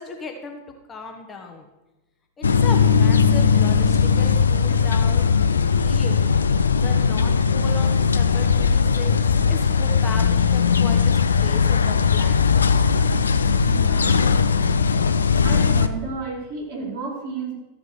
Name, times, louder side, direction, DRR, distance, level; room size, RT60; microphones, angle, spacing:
voice 1, 0.0-1.7 2.4-5.3 5.8-6.2 6.7-9.2 9.5-12.6, left 3 dB, 20° left, 3 dB, 1.2 m, -36 dB
sound 1, 2.4-15.9, left 6 dB, 75° left, 0.5 m, -18 dB
voice 2, 13.7-14.3 15.4-17.5, right 3 dB, 50° right, -3 dB, 4.1 m, -32 dB
13.5 x 4.9 x 6.8 m, 1.1 s
figure-of-eight pair, 90°, 0 cm